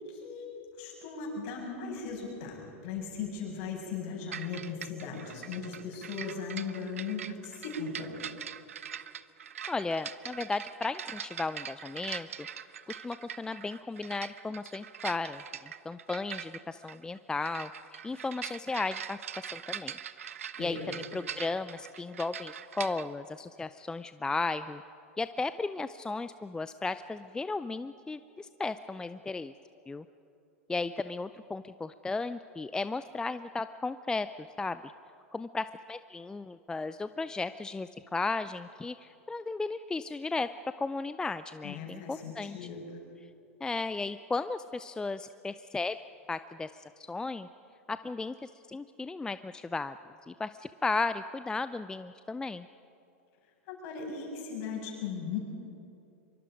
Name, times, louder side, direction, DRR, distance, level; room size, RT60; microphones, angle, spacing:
voice 1, 0.1-0.5 0.7-8.3 20.6-20.9 41.6-42.9 53.7-55.4, left 5 dB, 50° left, 0 dB, 6.7 m, -38 dB
sound 1, 4.3-23.1, right 8 dB, 75° right, 0.6 m, -42 dB
voice 2, 9.7-20.3 20.6-24.8 25.2-29.5 29.9-30.0 30.7-34.3 34.6-34.9 35.3-40.5 40.8-42.6 43.6-46.0 46.3-47.5 47.9-50.0 50.3-52.7, left 3 dB, 10° left, 13 dB, 0.4 m, -35 dB
24.5 x 24.0 x 5.2 m, 2.7 s
hypercardioid pair, 95°, 7 cm